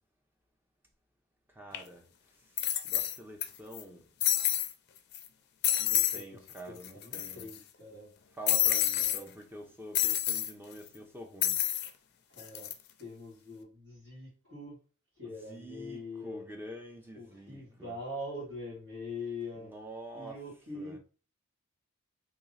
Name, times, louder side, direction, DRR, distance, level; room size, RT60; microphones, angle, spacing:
voice 1, 1.5-2.1 2.8-4.1 5.8-7.5 8.4-11.6 15.4-17.9 19.6-20.4 20.7-21.0, right 1 dB, 10° right, 0.6 m, -47 dB
sound 1, 1.7-1.8 2.6-3.4 3.7-3.8 4.2-4.7 5.1-5.3 5.6-6.2 6.5-6.6 6.8-7.6 8.5-9.2 9.9-10.5 11.4-11.9 12.4-12.7, left 12 dB, 50° left, 0.4 m, -28 dB
voice 2, 5.9-8.1 9.0-9.3 12.3-12.7 13.0-14.8 15.2-16.5 17.1-19.7 20.1-21.0, left 2 dB, 55° right, 2.0 m, -43 dB
3.0 x 2.8 x 4.0 m
head